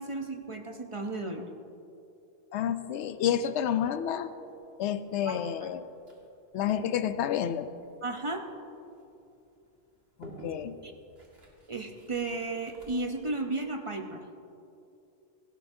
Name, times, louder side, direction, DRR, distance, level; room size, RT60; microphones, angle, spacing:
voice 1, 0.0-1.4 5.2-5.7 8.0-8.5 10.8-10.9 11.7-14.2, right 2 dB, 30° right, 4 dB, 0.7 m, -34 dB
voice 2, 2.5-4.3 4.8-5.9 6.5-7.7 10.2-10.7, left 9 dB, 80° left, 12 dB, 0.9 m, -30 dB
sound 1, 3.4-13.2, equal, 60° right, 2.2 m, -54 dB
17.0 x 15.0 x 2.7 m, 2.6 s
omnidirectional pair, 1.2 m